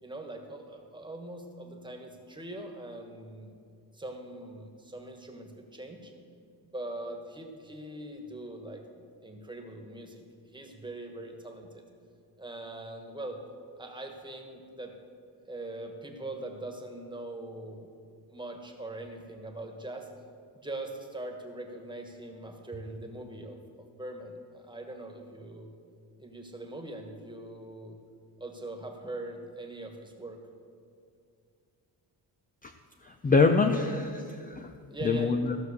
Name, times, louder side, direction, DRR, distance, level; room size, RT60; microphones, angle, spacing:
voice 1, 0.0-3.5 3.9-6.1 6.6-10.2 10.5-11.8 12.4-13.4 13.8-15.0 15.4-17.9 18.3-20.1 20.5-25.7 26.2-28.0 28.4-30.4 34.9-35.4, right 2 dB, 10° right, 3 dB, 1.5 m, -42 dB
voice 2, 33.0-34.7 35.0-35.6, left 4 dB, 20° left, 6 dB, 0.5 m, -25 dB
14.5 x 6.3 x 6.7 m, 2.3 s
cardioid pair, 115°, 41 cm